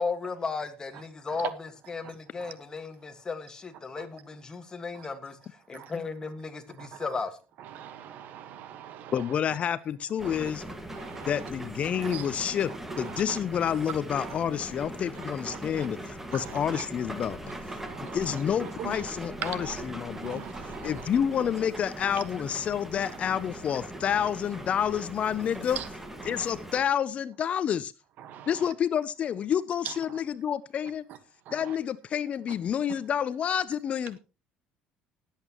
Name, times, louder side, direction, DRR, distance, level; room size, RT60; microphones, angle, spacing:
voice 1, 0.0-5.4 5.7-7.4, left 4 dB, 20° left, 1.7 m, -35 dB
voice 2, 7.6-9.2 10.2-10.3 10.9-11.5 12.0-12.3 12.9-13.4 14.2-14.3 15.5-15.9 16.3-16.8 17.8-19.0 19.4-19.8 20.2-21.1 24.1-24.2 25.7-25.9 26.2-26.5 28.2-28.6 29.8-29.9 31.5-31.8, right 10 dB, 60° right, 1.4 m, -41 dB
voice 3, 9.1-10.6 11.3-17.4 18.0-20.4 20.8-25.8 26.2-27.9 28.5-31.0 31.5-34.2, left 8 dB, 40° left, 0.5 m, -29 dB
sound 1, 10.2-26.8, right 1 dB, 10° right, 1.7 m, -40 dB
19.5 x 8.3 x 3.0 m
cardioid pair, 130°, 3 cm